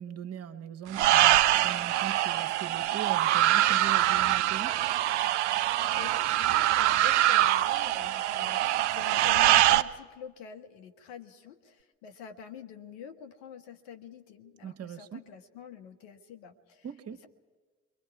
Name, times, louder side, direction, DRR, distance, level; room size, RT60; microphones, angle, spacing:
voice 1, 0.0-4.7 14.6-15.2 16.8-17.2, right 9 dB, 45° right, 8 dB, 1.2 m, -40 dB
sound 1, 0.9-9.8, right 14 dB, 80° right, 0.6 m, -24 dB
voice 2, 5.9-16.9, left 7 dB, 70° left, 6 dB, 1.6 m, -46 dB
28.0 x 23.5 x 4.7 m, 1.4 s
figure-of-eight pair, 50°, 34 cm